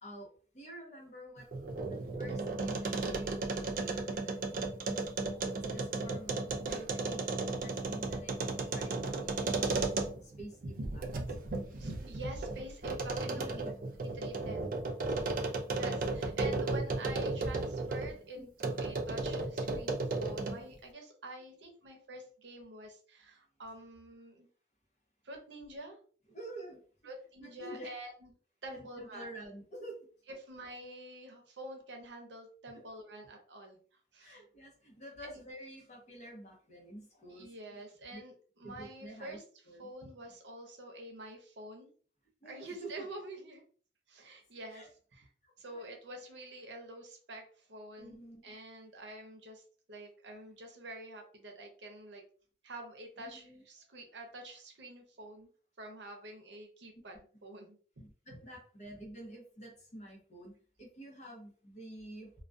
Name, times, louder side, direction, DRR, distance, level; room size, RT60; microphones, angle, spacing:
voice 1, 0.5-1.5 1.9-4.5 4.8-8.4 8.7-9.7 10.4-10.8 13.3-13.7 15.1-15.5 16.2-16.3 18.3-18.5 26.3-26.8 27.4-27.9 28.7-30.0 32.7-32.9 34.2-37.8 38.1-38.2 38.6-39.4 39.7-39.9 42.4-42.9 44.7-44.9 45.4-45.9 48.0-48.5 53.2-53.6 58.0-62.3, right 1 dB, 40° left, -1 dB, 0.8 m, -49 dB
sound 1, 1.4-10.4 10.8-18.1 18.6-20.7, right 3 dB, 45° right, 0.3 m, -35 dB
voice 2, 9.4-10.1 10.6-13.4 14.0-14.7 15.7-24.5 25.2-26.0 27.0-28.3 28.6-29.3 30.4-34.4 35.2-35.4 37.3-39.4 39.8-41.9 42.4-43.6 44.1-45.3 45.6-52.2 52.6-55.5 55.8-57.8, right 1 dB, 85° right, 3 dB, 0.7 m, -47 dB
2.3 x 2.2 x 2.5 m, 0.44 s
head